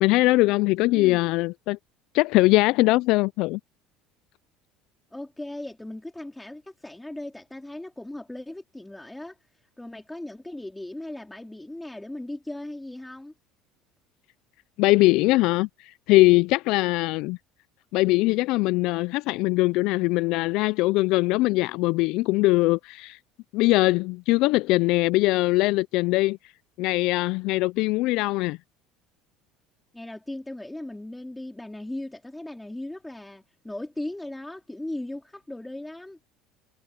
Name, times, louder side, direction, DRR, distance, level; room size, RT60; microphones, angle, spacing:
voice 1, 0.0-1.8 2.1-3.6 14.8-17.4 17.9-23.2 23.5-26.4 26.8-28.6, left 21 dB, 70° left, 0.3 m, -21 dB
voice 2, 5.1-9.4 9.8-13.3 29.9-36.2, left 1 dB, 5° left, 3.0 m, -37 dB
supercardioid pair, 110°, 0 cm